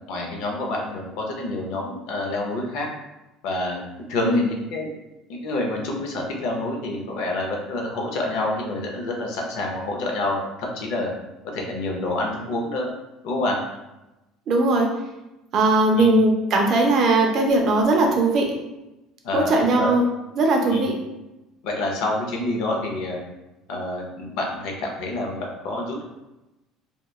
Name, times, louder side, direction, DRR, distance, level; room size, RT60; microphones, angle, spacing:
voice 1, 0.1-2.9 3.4-3.8 4.1-4.9 5.3-11.1 11.4-12.9 13.2-13.6 15.9-16.1 19.2-19.9 20.7-20.9 21.6-23.2 23.7-26.0, left 2 dB, 60° left, 0 dB, 0.5 m, -27 dB
voice 2, 14.5-14.9 15.5-18.6 19.3-20.0 20.4-21.0, right 2 dB, 35° right, 1 dB, 0.4 m, -19 dB
2.8 x 2.1 x 2.3 m, 0.98 s
cardioid pair, 175°, 0 cm